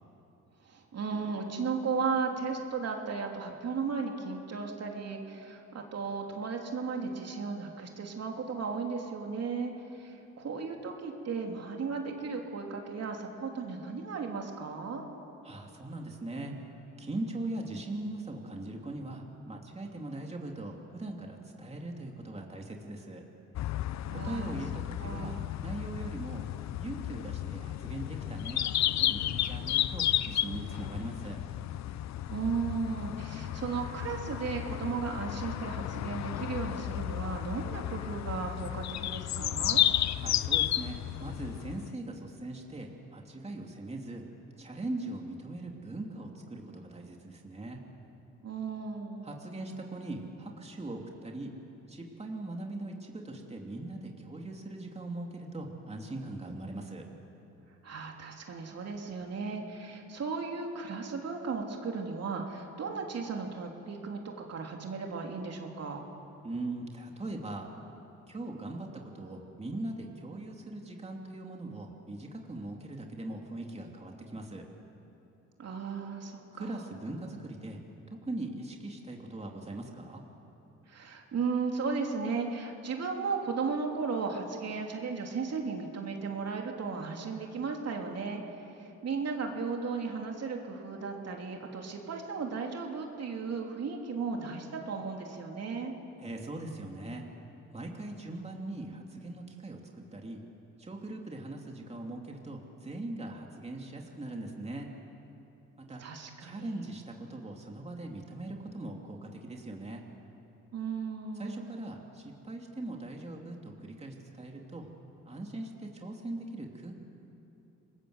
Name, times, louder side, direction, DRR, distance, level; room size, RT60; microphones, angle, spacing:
voice 1, 0.6-15.0 24.1-24.6 25.0-25.4 32.3-39.8 48.4-49.3 57.8-66.0 75.6-76.8 80.9-95.9 106.0-106.8 110.7-111.7, right 5 dB, 55° right, 2 dB, 3.4 m, -35 dB
voice 2, 15.4-16.5 17.0-23.2 24.2-25.3 25.6-26.4 26.8-28.7 29.0-31.4 40.1-44.2 44.6-47.8 49.2-51.5 51.9-57.1 66.4-67.7 68.3-74.6 76.5-77.8 78.1-80.2 96.2-97.2 97.7-99.8 100.1-100.4 100.8-104.9 105.8-106.0 106.4-110.0 111.4-114.9 115.3-116.9, right 2 dB, 20° right, 1 dB, 2.9 m, -40 dB
sound 1, 23.5-41.9, left 12 dB, 65° left, 0.7 m, -33 dB
28.0 x 21.0 x 8.1 m, 2.9 s
cardioid pair, 90°, 30 cm